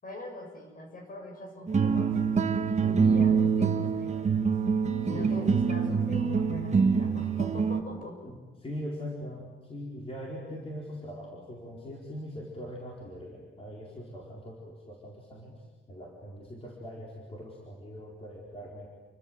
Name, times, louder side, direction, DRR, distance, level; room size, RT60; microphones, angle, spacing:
voice 1, 0.0-2.2 2.8-4.4 5.0-8.2, left 1 dB, 45° left, 3 dB, 7.3 m, -42 dB
sound 1, 1.7-7.8, right 5 dB, 35° right, 1.5 m, -25 dB
voice 2, 5.0-5.5 8.2-18.9, equal, 30° left, -3 dB, 4.5 m, -41 dB
29.5 x 24.5 x 8.0 m, 1.2 s
wide cardioid pair, 170°, 21 cm